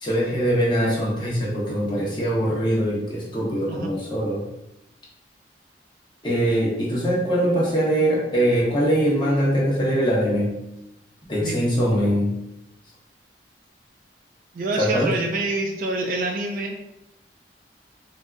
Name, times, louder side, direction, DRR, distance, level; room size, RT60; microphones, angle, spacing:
voice 1, 0.0-4.4 6.2-10.6 11.3-12.4 14.8-15.1, equal, 25° left, -6 dB, 0.8 m, -22 dB
voice 2, 14.5-16.7, right 2 dB, 50° right, 3 dB, 0.3 m, -26 dB
3.3 x 2.6 x 2.3 m, 0.89 s
head